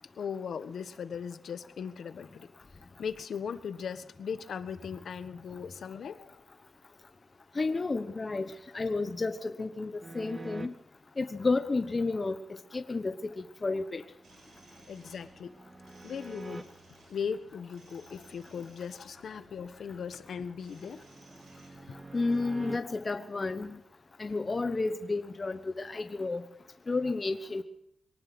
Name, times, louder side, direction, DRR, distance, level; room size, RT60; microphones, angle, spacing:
voice 1, 0.2-2.5 3.0-6.3 14.9-15.5 16.0-16.7 17.1-21.0 22.6-22.8, left 7 dB, 80° left, 10 dB, 1.5 m, -38 dB
voice 2, 7.6-8.5 8.7-10.7 11.2-12.4 12.7-14.0 22.1-23.7 24.2-26.4 26.9-27.6, left 3 dB, 30° left, 7 dB, 1.1 m, -31 dB
sound 1, 10.0-10.7 14.1-16.6 19.7-22.8, right 2 dB, 25° right, 1.2 m, -47 dB
sound 2, 14.2-22.4, right 3 dB, 90° right, 6.9 m, -59 dB
23.0 x 18.5 x 6.2 m, 0.75 s
wide cardioid pair, 125°, 0 cm